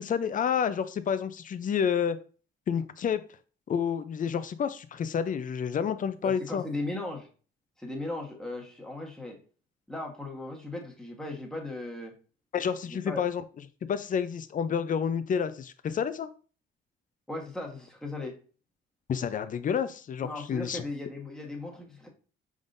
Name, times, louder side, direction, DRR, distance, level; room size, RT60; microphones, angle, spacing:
voice 1, 0.0-2.2 2.7-3.2 3.7-6.6 12.5-13.4 13.8-16.3 19.1-20.8, left 7 dB, 40° left, 12 dB, 0.5 m, -29 dB
voice 2, 6.2-7.3 7.8-9.4 9.9-12.2 12.9-13.2 17.3-18.4 20.2-22.1, left 2 dB, 5° left, 0 dB, 1.3 m, -37 dB
5.2 x 3.7 x 2.6 m, 0.39 s
cardioid pair, 90°, 20 cm